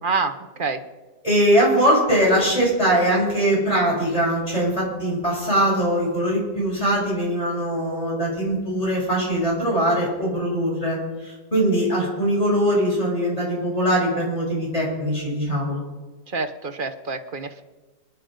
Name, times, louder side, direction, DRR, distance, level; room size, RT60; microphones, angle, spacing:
voice 1, 0.0-0.8 16.3-17.6, right 4 dB, 35° right, 7 dB, 1.0 m, -27 dB
voice 2, 1.2-15.8, right 1 dB, 20° left, -6 dB, 7.7 m, -21 dB
27.5 x 9.7 x 5.2 m, 1.2 s
omnidirectional pair, 2.0 m